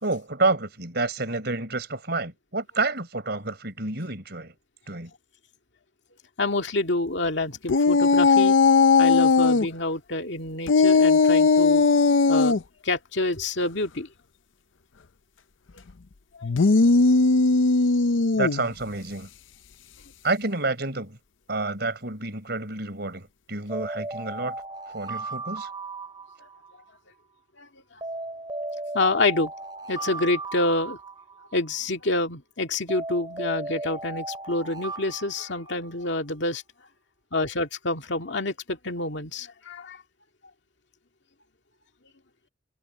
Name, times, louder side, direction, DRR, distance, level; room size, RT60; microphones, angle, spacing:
voice 1, 0.0-4.5 4.9-5.1 18.3-19.3 20.2-21.2 21.5-24.5 24.9-25.7, right 3 dB, 55° right, 4.6 m, -29 dB
voice 2, 6.4-8.6 9.0-11.8 12.3-12.6 12.8-14.1 16.4-16.5 27.6-27.7 28.9-29.5 29.9-31.0 31.5-36.6 37.3-40.0, left 2 dB, 65° left, 2.1 m, -27 dB
sound 1, 7.7-9.7 10.7-12.6 16.4-18.7, left 4 dB, 85° left, 0.7 m, -18 dB
sound 2, 23.7-26.9 28.0-31.8 32.9-36.1, right 2 dB, 25° right, 2.4 m, -36 dB
head